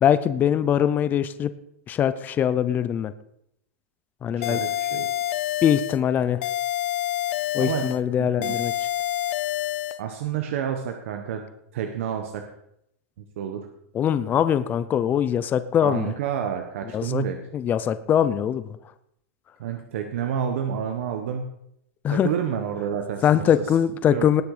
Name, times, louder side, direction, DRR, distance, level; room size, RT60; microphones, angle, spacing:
voice 1, 0.0-1.5 1.9-3.1 4.2-4.6 5.6-6.4 7.5-8.7 13.9-16.1 16.9-17.2 17.5-18.6 22.0-22.3 23.2-24.4, left 9 dB, 25° left, 13 dB, 0.6 m, -22 dB
sound 1, 4.4-6.0 6.4-8.0 8.4-10.0, left 12 dB, 60° left, 0.7 m, -27 dB
voice 2, 4.4-5.1 7.6-7.9 8.2-8.5 10.0-11.4 11.7-12.4 13.4-13.7 15.8-17.4 19.6-21.4 22.1-23.4 24.1-24.3, right 8 dB, 70° right, 5 dB, 1.4 m, -29 dB
19.0 x 6.7 x 5.0 m, 0.75 s
supercardioid pair, 135°, 7 cm